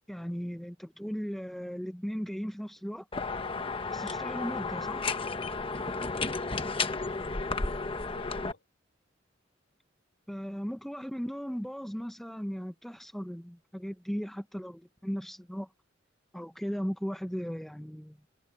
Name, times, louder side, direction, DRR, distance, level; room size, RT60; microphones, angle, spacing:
voice 1, 0.1-3.1 3.9-5.1 10.3-15.7 16.3-18.2, equal, ahead, 0.5 m, -37 dB
sound 1, 3.1-8.5, left 4 dB, 30° left, 1.1 m, -33 dB
voice 2, 6.1-8.6, left 2 dB, 70° left, 3.5 m, -52 dB
head